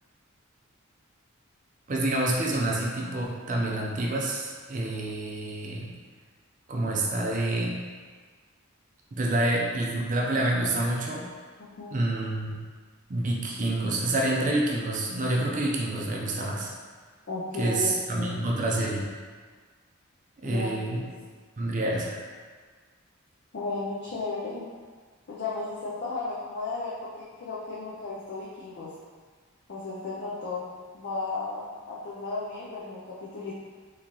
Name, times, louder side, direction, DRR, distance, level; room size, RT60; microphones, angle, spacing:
voice 1, 1.9-5.9 6.7-7.8 9.1-11.3 11.9-12.6 13.1-16.7 17.6-19.0 20.4-21.0 21.6-22.2, right 1 dB, 40° right, -3 dB, 0.5 m, -27 dB
voice 2, 11.6-12.0 17.3-18.5 20.4-21.1 23.5-24.7 25.3-28.9 29.7-33.5, left 3 dB, 55° left, -6 dB, 0.5 m, -35 dB
3.7 x 2.8 x 2.9 m, 1.5 s
head